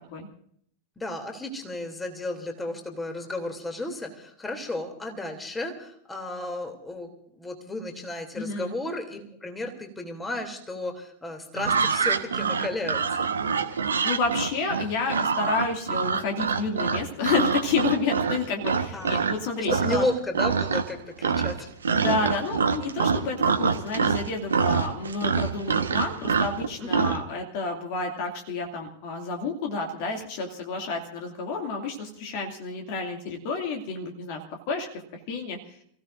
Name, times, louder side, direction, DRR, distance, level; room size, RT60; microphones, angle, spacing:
voice 1, 1.0-13.3 18.9-19.3 19.8-21.7 26.8-27.1, left 2 dB, 10° left, 4 dB, 3.0 m, -33 dB
voice 2, 8.3-8.7 13.6-13.7 14.0-20.1 21.9-34.4 34.7-34.9 35.3-35.8, left 4 dB, 45° left, 2 dB, 2.5 m, -30 dB
sound 1, 11.6-19.4 19.7-20.1 20.3-21.0 21.2-27.2, right 5 dB, 70° right, 1.3 m, -25 dB
30.0 x 16.5 x 2.6 m, 0.65 s
figure-of-eight pair, 90°, 0 cm